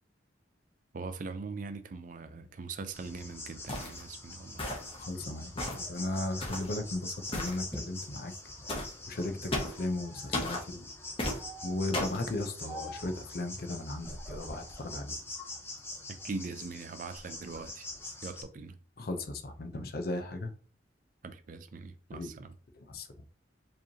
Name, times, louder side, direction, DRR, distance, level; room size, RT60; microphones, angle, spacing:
voice 1, 0.9-4.6 16.1-17.9 18.2-18.8 21.2-22.6, right 4 dB, 45° right, 0.4 m, -41 dB
sound 1, 2.9-18.4, left 2 dB, 15° left, 0.6 m, -44 dB
sound 2, 3.7-4.0 4.6-5.0 5.6-5.9 6.4-6.7 7.3-7.6 8.7-8.9 9.5-9.8 10.3-10.6 11.2-11.4 11.9-12.2, left 1 dB, 30° left, 1.0 m, -34 dB
sound 3, 4.9-8.1 8.5-9.4 9.8-10.4 11.4-11.9 12.7-13.2 14.0-15.0 15.5-16.5 16.9-17.6, equal, 5° right, 1.4 m, -50 dB
voice 2, 5.0-8.3 9.1-10.9 11.6-15.2 19.0-20.5 22.1-22.3 22.9-23.1, left 2 dB, 50° left, 0.6 m, -36 dB
4.7 x 3.1 x 2.8 m
head